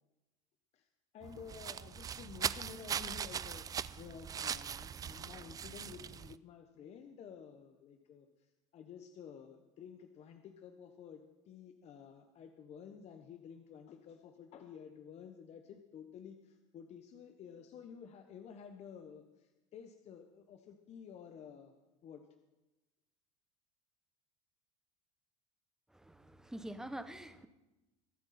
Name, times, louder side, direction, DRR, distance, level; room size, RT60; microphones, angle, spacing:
voice 1, 1.1-21.7 22.0-22.2, left 7 dB, 40° left, 7 dB, 1.0 m, -52 dB
sound 1, 1.2-6.4, right 8 dB, 20° right, 0.3 m, -40 dB
voice 2, 25.9-27.5, right 1 dB, 5° right, 11 dB, 0.9 m, -46 dB
23.0 x 8.1 x 4.2 m, 1.1 s
supercardioid pair, 105°, 16 cm